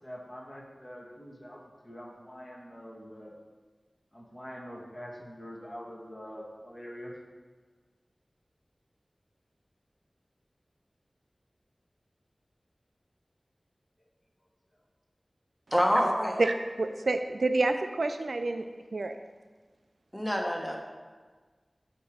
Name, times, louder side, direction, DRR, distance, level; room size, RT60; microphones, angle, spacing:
voice 1, 0.0-3.3 4.1-7.1, equal, 30° left, -2 dB, 1.3 m, -44 dB
voice 2, 15.7-16.4 20.1-20.8, equal, 5° left, 0 dB, 1.0 m, -26 dB
voice 3, 16.4-18.6 18.9-19.2, right 2 dB, 90° right, 7 dB, 0.3 m, -28 dB
8.0 x 2.9 x 4.9 m, 1.4 s
wide cardioid pair, 55°, 0 cm